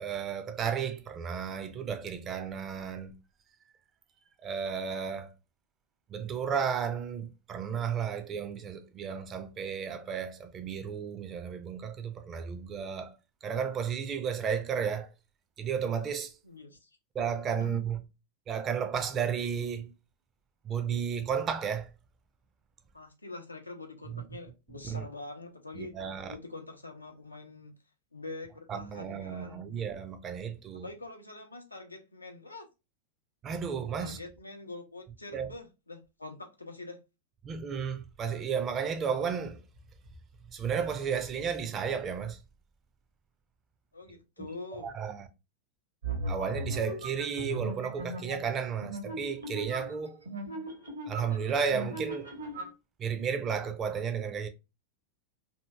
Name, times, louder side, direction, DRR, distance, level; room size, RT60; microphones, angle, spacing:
voice 1, 0.0-3.1 4.4-5.3 6.1-13.2 13.4-15.1 15.6-16.4 17.1-18.0 18.5-19.9 20.6-21.9 24.1-24.2 24.9-25.0 25.7-26.3 28.7-30.9 33.4-34.2 35.3-35.5 37.4-39.6 40.5-42.4 44.4-44.5 44.8-45.3 46.3-50.3 51.1-52.3 53.0-54.5, right 7 dB, 25° right, 0.5 m, -33 dB
voice 2, 16.4-16.9 17.6-17.8 22.9-25.9 26.3-27.7 28.1-29.6 30.8-32.7 34.0-37.0 43.9-44.9, left 3 dB, 80° left, 0.6 m, -44 dB
sound 1, 46.0-52.7, right 1 dB, 70° right, 1.1 m, -38 dB
2.8 x 2.7 x 2.2 m
figure-of-eight pair, 90°, 0 cm